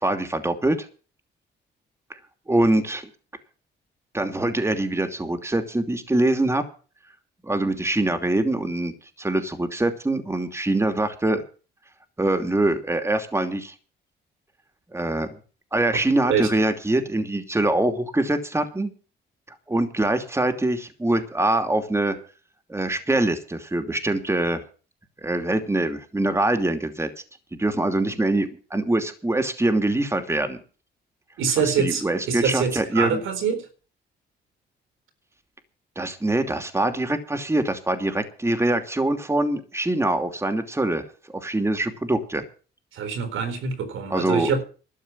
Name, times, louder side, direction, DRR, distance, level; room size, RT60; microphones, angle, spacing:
voice 1, 0.0-0.9 2.5-3.1 4.1-6.6 7.4-8.9 9.2-11.4 12.2-13.7 14.9-15.4 15.7-18.9 19.7-22.2 22.7-24.6 25.2-27.1 27.6-30.6 31.8-33.2 36.0-42.4 44.1-44.5, right 1 dB, 15° right, 2.8 m, -24 dB
voice 2, 31.4-33.7 42.9-44.6, right 6 dB, 85° right, 4.0 m, -25 dB
12.5 x 7.9 x 9.7 m
cardioid pair, 90°, 20 cm